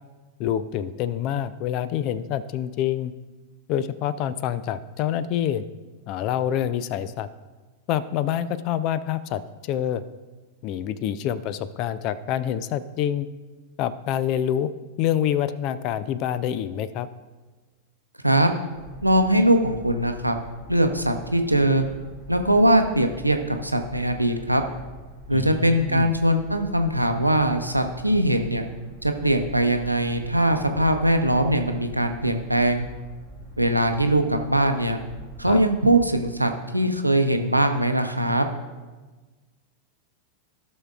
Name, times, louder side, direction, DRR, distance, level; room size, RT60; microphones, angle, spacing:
voice 1, 0.4-3.1 3.7-5.6 6.1-7.3 7.9-10.0 10.6-13.3 13.8-14.7 15.0-17.1 25.3-26.1 35.5-35.6, left 10 dB, 40° left, 15 dB, 0.4 m, -26 dB
sound 1, 18.7-36.2, left 1 dB, 25° left, 2.3 m, -44 dB
voice 2, 19.0-20.4 20.7-21.8 22.3-24.6 25.3-28.6 29.0-32.9 33.6-35.0 35.4-38.5, right 1 dB, 85° right, 6 dB, 0.7 m, -21 dB
16.0 x 6.1 x 2.4 m, 1.3 s
figure-of-eight pair, 90°, 0 cm